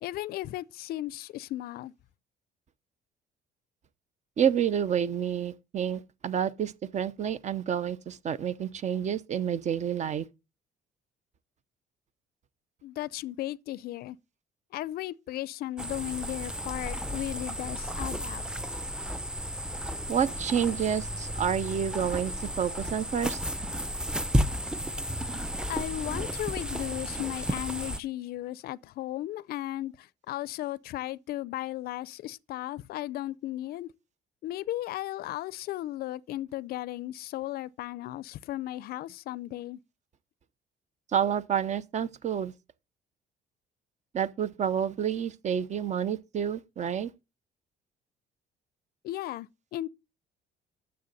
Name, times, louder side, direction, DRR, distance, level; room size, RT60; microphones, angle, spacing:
voice 1, 0.0-1.9 12.8-14.2 14.7-18.5 25.7-33.9 34.4-39.8 49.0-49.9, left 15 dB, 65° left, 0.5 m, -35 dB
voice 2, 4.4-10.2 20.1-23.4 41.1-42.5 44.1-47.1, right 8 dB, 45° right, 0.8 m, -29 dB
sound 1, 15.8-28.0, equal, 5° right, 0.6 m, -33 dB
9.6 x 7.1 x 4.0 m
cardioid pair, 110°, 17 cm